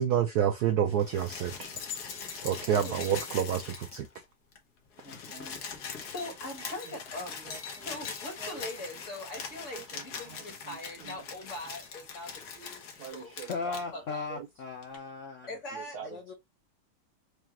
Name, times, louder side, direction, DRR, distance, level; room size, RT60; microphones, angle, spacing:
voice 1, 0.0-1.7 2.4-4.1 7.8-7.9 8.4-8.6 9.7-9.8 13.0-13.8 14.3-14.4 15.9-16.1, right 9 dB, 90° right, 0.8 m, -29 dB
sound 1, 0.9-4.2 4.5-4.6 4.8-13.9 14.8-14.9, left 6 dB, 55° left, 1.4 m, -42 dB
voice 2, 2.7-3.1 5.0-13.3 13.7-14.3 14.9-15.0 15.5-16.2, left 1 dB, 40° left, 1.6 m, -42 dB
voice 3, 13.5-15.5 16.0-16.3, left 4 dB, 85° left, 0.6 m, -37 dB
4.8 x 2.3 x 2.9 m
omnidirectional pair, 2.3 m